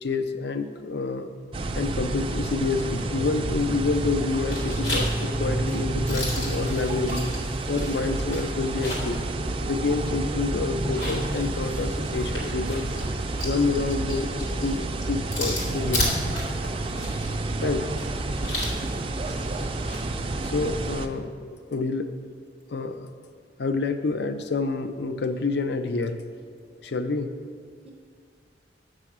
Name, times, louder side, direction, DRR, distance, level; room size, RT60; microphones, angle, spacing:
voice 1, 0.0-1.3 1.7-7.3 7.7-9.2 9.6-12.9 13.4-16.1 17.6-17.9 20.4-22.1 22.7-23.1 23.6-26.2 26.8-27.3, left 3 dB, 65° left, 9 dB, 0.5 m, -28 dB
sound 1, 1.5-21.1, right 2 dB, 30° right, 0.4 m, -29 dB
sound 2, 3.8-4.2 4.5-9.2 9.6-9.7 10.8-20.0, left 1 dB, 85° left, 2.3 m, -34 dB
voice 2, 18.6-19.0 26.6-26.9 27.8-27.9, left 1 dB, 15° left, 1 dB, 0.6 m, -47 dB
7.7 x 6.2 x 6.0 m, 2.1 s
head